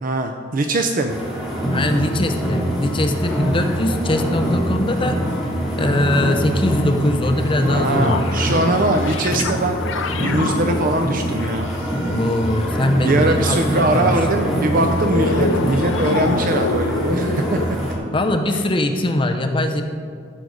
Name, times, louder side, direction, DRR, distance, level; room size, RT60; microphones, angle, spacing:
voice 1, 0.0-1.2 7.6-9.8 10.1-11.7 13.0-17.8 18.5-18.6, right 2 dB, 45° right, 5 dB, 0.5 m, -21 dB
sound 1, 1.1-17.9, equal, ahead, 2.5 m, -24 dB
voice 2, 1.7-5.2 5.8-8.4 12.1-14.1 18.1-19.8, left 1 dB, 25° left, 5 dB, 0.7 m, -21 dB
sound 2, 7.4-12.9 14.0-17.7, left 3 dB, 70° left, 0.6 m, -27 dB
14.5 x 5.2 x 6.4 m, 2.2 s
head